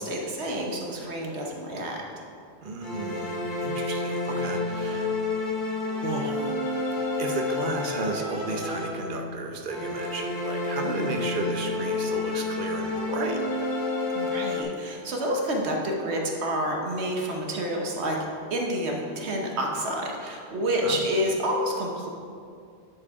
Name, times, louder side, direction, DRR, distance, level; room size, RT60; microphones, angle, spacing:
voice 1, 0.0-2.1 10.9-11.0 14.1-18.2 18.5-22.1, equal, 80° right, 0 dB, 1.2 m, -29 dB
voice 2, 2.6-5.2 5.6-5.7 6.0-6.5 7.2-13.4 20.8-21.0, right 3 dB, 50° right, 2 dB, 0.9 m, -34 dB
sound 1, 2.8-9.3 9.7-14.6, left 3 dB, 50° left, 1.2 m, -29 dB
9.8 x 4.8 x 4.7 m, 2.4 s
omnidirectional pair, 1.1 m